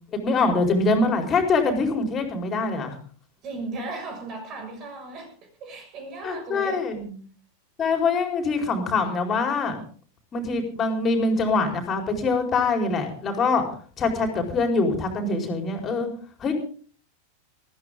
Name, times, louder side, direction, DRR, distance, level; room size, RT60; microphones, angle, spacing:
voice 1, 0.1-3.0 6.2-7.1 7.8-9.8 10.3-13.7 14.0-16.1 16.4-16.5, left 3 dB, 25° left, 5 dB, 4.4 m, -24 dB
voice 2, 3.4-5.3 5.6-6.8, right 3 dB, 35° right, 4 dB, 6.2 m, -36 dB
20.0 x 15.0 x 3.8 m, 0.43 s
figure-of-eight pair, 90°, 0 cm